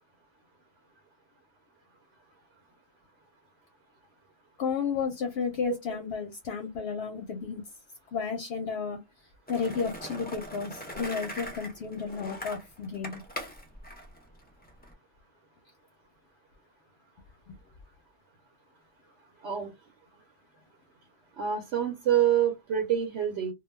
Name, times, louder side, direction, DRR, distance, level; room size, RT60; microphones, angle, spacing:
voice 1, 4.6-7.6 8.1-9.0 9.5-13.2 17.5-17.6, left 5 dB, 65° left, 0.7 m, -32 dB
Skateboard, 9.5-14.9, equal, 15° left, 0.3 m, -41 dB
voice 2, 21.4-23.5, right 9 dB, 70° right, 0.9 m, -26 dB
2.3 x 2.2 x 3.1 m
omnidirectional pair, 1.3 m